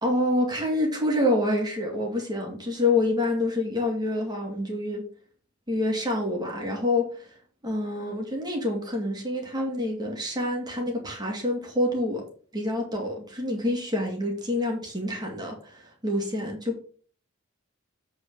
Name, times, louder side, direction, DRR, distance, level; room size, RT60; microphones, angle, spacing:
voice 1, 0.0-5.0 5.7-7.3 7.6-12.2 12.5-16.8, left 1 dB, 20° right, 0 dB, 2.2 m, -27 dB
8.2 x 4.4 x 5.5 m, 0.43 s
head